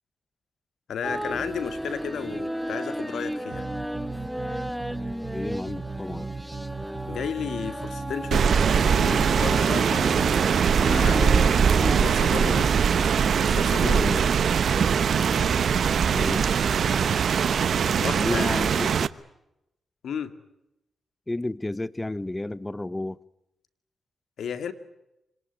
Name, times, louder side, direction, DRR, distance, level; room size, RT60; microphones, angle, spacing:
voice 1, 0.9-3.7 7.1-8.6 9.0-10.3 10.8-12.8 13.4-14.1 18.0-18.7 20.0-20.3 24.4-24.7, left 7 dB, 75° left, 2.2 m, -33 dB
sound 1, 1.0-12.0, equal, ahead, 1.1 m, -33 dB
sound 2, 3.5-17.1, right 4 dB, 40° right, 3.9 m, -37 dB
voice 2, 5.3-6.3 13.9-14.3 16.1-16.5 18.2-19.1 21.3-23.2, left 1 dB, 20° left, 1.1 m, -31 dB
Rain, 8.3-19.1, right 7 dB, 70° right, 0.9 m, -22 dB
26.5 x 19.5 x 9.6 m
supercardioid pair, 55°, 0 cm